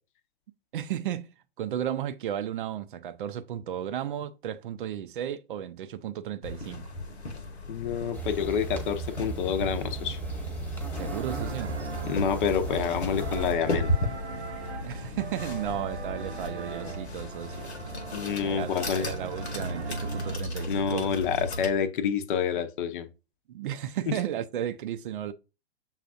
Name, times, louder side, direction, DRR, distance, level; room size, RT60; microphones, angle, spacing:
voice 1, 0.7-6.9 10.9-11.8 14.8-17.7 18.4-21.1 23.5-25.3, right 10 dB, 50° right, 0.5 m, -34 dB
sound 1, 6.4-21.7, left 1 dB, 80° left, 1.0 m, -35 dB
voice 2, 7.7-10.2 12.1-13.9 18.1-19.1 20.7-23.1, left 7 dB, 50° left, 0.7 m, -28 dB
sound 2, 8.1-13.5, right 3 dB, 5° left, 1.2 m, -36 dB
sound 3, 10.9-20.4, right 7 dB, 80° right, 0.8 m, -41 dB
7.0 x 2.4 x 2.5 m
figure-of-eight pair, 110°, 33 cm